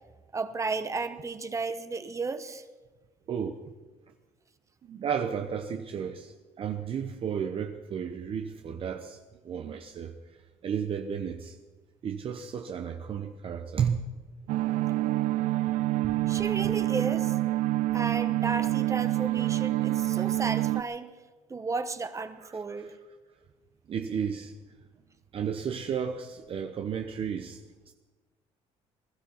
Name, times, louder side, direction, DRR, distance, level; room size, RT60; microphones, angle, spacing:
voice 1, 0.3-2.6 16.3-17.3 17.9-21.1 21.5-22.9, right 4 dB, 25° right, 1.1 m, -33 dB
voice 2, 3.3-3.6 4.8-11.6 12.0-14.0 16.0-16.2 22.4-23.0 23.9-24.6 25.3-27.9, right 7 dB, 50° right, 1.0 m, -33 dB
sound 1, 14.5-20.8, right 16 dB, 80° right, 0.5 m, -27 dB
20.5 x 12.5 x 5.7 m
cardioid pair, 100°, 12 cm